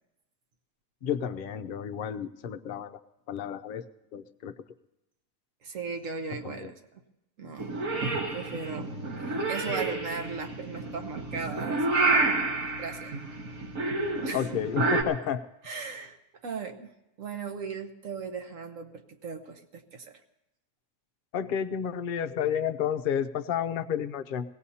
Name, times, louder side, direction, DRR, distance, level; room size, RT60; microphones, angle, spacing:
voice 1, 1.0-3.0 3.3-3.8 4.1-4.5 6.4-6.7 14.3-15.4 21.3-24.4, left 8 dB, 55° left, 8 dB, 0.6 m, -31 dB
voice 2, 5.6-7.0 7.4-7.7 8.0-8.1 8.3-12.3 12.8-13.1 14.2-14.5 15.6-16.2 16.4-16.9 17.2-20.2, right 5 dB, 65° right, 5 dB, 1.3 m, -37 dB
Purr / Meow, 7.6-15.0, right 3 dB, 85° right, 2.2 m, -29 dB
23.5 x 17.0 x 2.8 m, 0.91 s
omnidirectional pair, 1.5 m